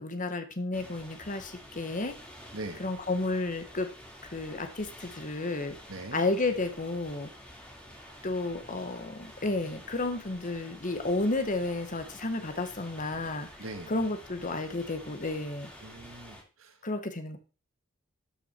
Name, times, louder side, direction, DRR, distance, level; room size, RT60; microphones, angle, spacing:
voice 1, 0.0-2.1 2.8-3.9 4.2-5.8 6.1-7.3 8.2-13.5 13.9-15.7 16.8-17.4, left 2 dB, 40° left, 8 dB, 1.4 m, -32 dB
sound 1, 0.7-16.4, equal, 5° left, 3.1 m, -49 dB
voice 2, 2.5-2.8 5.9-6.2 8.1-8.2 13.6-13.9 15.8-16.8, right 2 dB, 75° right, 7 dB, 1.8 m, -42 dB
12.0 x 6.0 x 4.6 m, 0.36 s
head